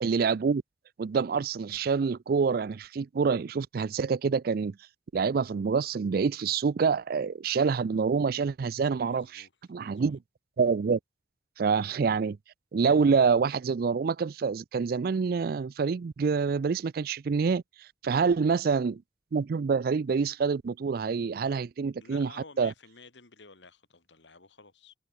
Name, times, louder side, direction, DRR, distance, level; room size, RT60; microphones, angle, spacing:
voice 1, 0.0-0.6 1.0-4.7 5.1-10.2 10.6-11.0 11.6-12.4 12.7-19.0 19.3-22.3 22.6-22.7, right 5 dB, 55° right, 0.4 m, -27 dB
voice 2, 9.0-9.5 9.8-10.2 18.0-18.3 22.0-24.9, left 4 dB, 85° left, 3.3 m, -53 dB
head